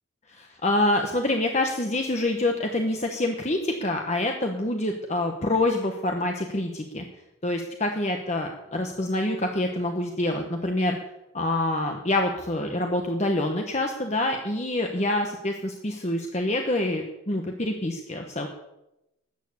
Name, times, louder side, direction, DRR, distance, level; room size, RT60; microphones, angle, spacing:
voice 1, 0.3-7.0 7.4-11.0 11.3-18.5, left 1 dB, 30° left, 3 dB, 1.2 m, -26 dB
13.0 x 9.3 x 8.5 m, 0.90 s
head